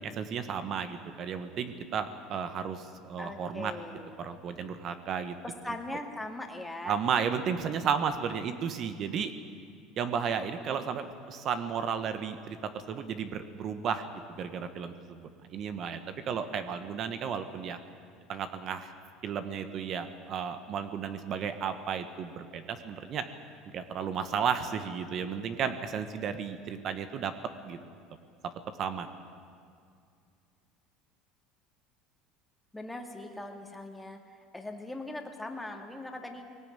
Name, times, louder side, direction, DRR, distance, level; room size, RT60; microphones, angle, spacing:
voice 1, 0.0-3.7 4.2-5.3 6.8-9.3 10.0-16.0 16.3-17.8 18.3-18.9 19.2-23.2 23.7-27.3 27.6-27.8 28.8-29.1, right 7 dB, 45° right, 9 dB, 1.3 m, -33 dB
voice 2, 3.2-4.2 5.4-7.0 32.7-34.2 34.5-36.5, left 2 dB, 5° left, 3 dB, 2.2 m, -40 dB
20.5 x 18.0 x 9.1 m, 2.3 s
supercardioid pair, 120°, 0 cm